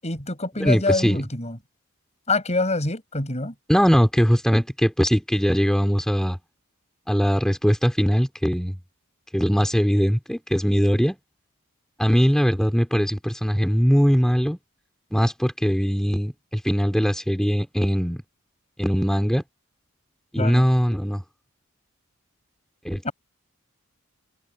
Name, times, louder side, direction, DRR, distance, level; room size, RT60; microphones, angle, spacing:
voice 1, 0.0-1.6 2.3-3.5 20.4-20.7 23.0-23.1, left 2 dB, 30° left, 7.2 m, -25 dB
voice 2, 0.6-1.2 3.7-6.4 7.1-8.8 9.3-11.2 12.0-14.6 15.1-18.2 18.8-19.4 20.3-21.2 22.8-23.1, equal, 5° left, 3.1 m, -21 dB
head